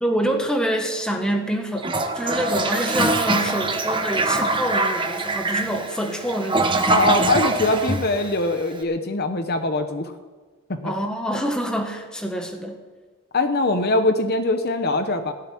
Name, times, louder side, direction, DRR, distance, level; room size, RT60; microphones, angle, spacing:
voice 1, 0.0-7.3 10.8-12.8, equal, 5° left, 3 dB, 1.5 m, -26 dB
Toilet flush, 1.8-8.7, right 3 dB, 20° right, 1.1 m, -23 dB
voice 2, 6.9-10.1 10.8-10.9 13.3-15.3, left 2 dB, 45° left, 7 dB, 0.9 m, -22 dB
17.0 x 7.1 x 9.9 m, 1.4 s
head